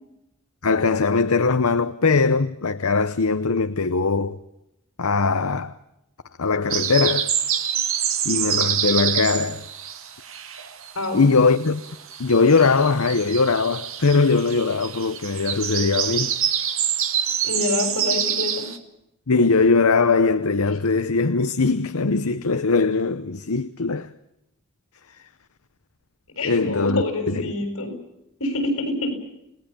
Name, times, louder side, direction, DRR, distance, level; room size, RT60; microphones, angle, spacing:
voice 1, 0.6-4.4 5.0-5.8 6.4-7.3 8.2-9.6 11.1-11.8 12.2-16.4 19.3-24.1 26.4-27.5, left 4 dB, 90° left, 0.9 m, -20 dB
sound 1, 6.7-11.0 11.3-18.8, right 9 dB, 70° right, 2.0 m, -26 dB
voice 2, 10.9-11.3 17.4-18.6 26.4-27.9 28.4-29.2, left 2 dB, 70° left, 7.4 m, -26 dB
29.5 x 18.5 x 7.1 m
head